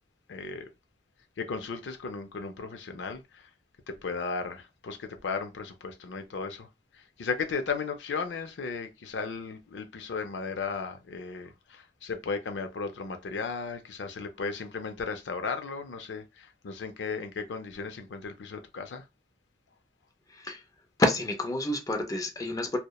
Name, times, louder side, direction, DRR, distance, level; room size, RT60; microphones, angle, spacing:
voice 1, 0.3-0.7 1.4-3.5 3.9-6.7 6.9-19.1, left 4 dB, 80° left, 0.4 m, -35 dB
voice 2, 20.3-20.6 21.0-22.8, left 1 dB, 20° left, 0.4 m, -28 dB
2.8 x 2.1 x 2.2 m
head